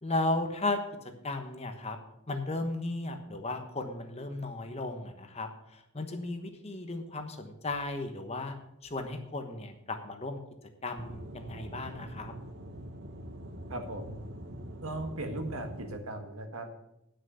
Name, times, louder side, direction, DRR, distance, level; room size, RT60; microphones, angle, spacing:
voice 1, 0.0-0.8 1.2-2.0 2.3-8.5 8.8-10.4 10.8-12.3, left 2 dB, 30° left, 6 dB, 1.2 m, -35 dB
Aircraft / Engine, 11.0-16.0, right 1 dB, 50° right, 0.9 m, -44 dB
voice 2, 13.7-14.2 14.8-16.7, right 1 dB, 80° right, 5 dB, 1.7 m, -38 dB
10.5 x 6.4 x 6.9 m, 0.82 s
head